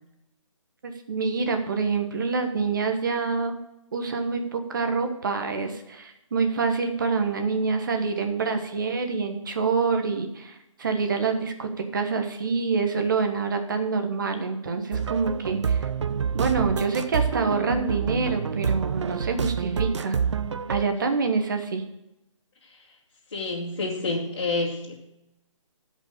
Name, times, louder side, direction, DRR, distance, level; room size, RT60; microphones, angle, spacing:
voice 1, 0.8-3.6 3.9-15.9 16.3-20.2 20.7-21.8, right 4 dB, 40° right, 5 dB, 1.3 m, -26 dB
sound 1, 14.9-20.8, right 6 dB, 60° right, 0.6 m, -27 dB
voice 2, 23.3-25.0, left 3 dB, 50° left, -4 dB, 2.3 m, -28 dB
12.5 x 5.5 x 7.1 m, 0.88 s
hypercardioid pair, 170°, 17 cm